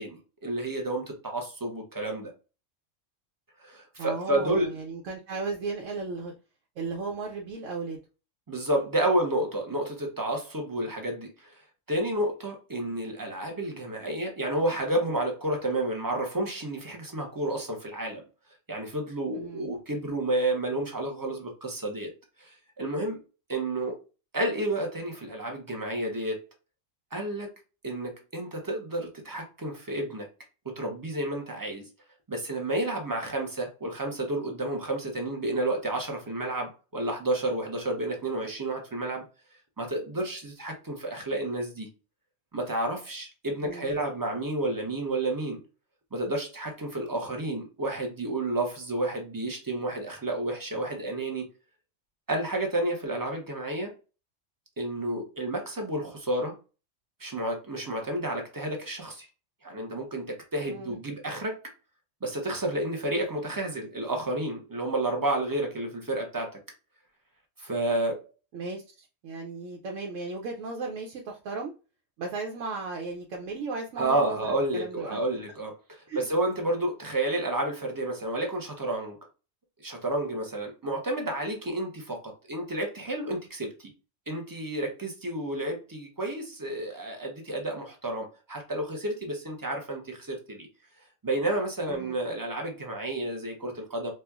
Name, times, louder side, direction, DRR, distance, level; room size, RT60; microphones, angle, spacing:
voice 1, 0.0-2.3 3.6-4.7 8.5-11.6 11.9-18.2 18.7-22.1 22.4-23.2 23.5-24.0 24.3-26.4 27.1-27.5 27.8-30.3 30.6-31.8 32.3-39.2 39.8-41.9 42.5-45.6 46.1-51.5 52.3-53.9 54.8-56.6 57.2-59.3 59.6-61.6 62.2-66.5 67.6-68.3 74.0-75.7 76.2-79.2 79.8-83.9 84.3-90.7 91.2-94.1, right 1 dB, 20° right, 0.7 m, -30 dB
voice 2, 4.0-6.3 6.8-8.0 19.3-19.7 43.6-43.9 60.7-61.0 68.5-71.7 72.2-75.2 76.1-76.2 91.9-92.2, right 3 dB, 85° right, 1.0 m, -36 dB
4.3 x 2.4 x 2.3 m
omnidirectional pair, 1.3 m